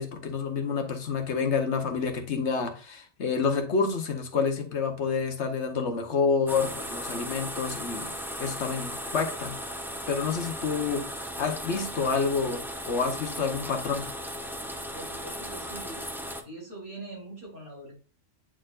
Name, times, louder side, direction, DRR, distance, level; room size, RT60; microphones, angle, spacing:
voice 1, 0.0-8.1 8.4-9.5 10.1-11.0 11.4-12.6 12.9-14.0, left 5 dB, 65° left, 5 dB, 1.3 m, -28 dB
sound 1, 6.5-16.4, equal, 5° right, 0.4 m, -36 dB
voice 2, 14.9-16.1 16.4-17.9, right 2 dB, 70° right, -3 dB, 3.7 m, -43 dB
9.0 x 4.4 x 2.5 m, 0.36 s
omnidirectional pair, 1.3 m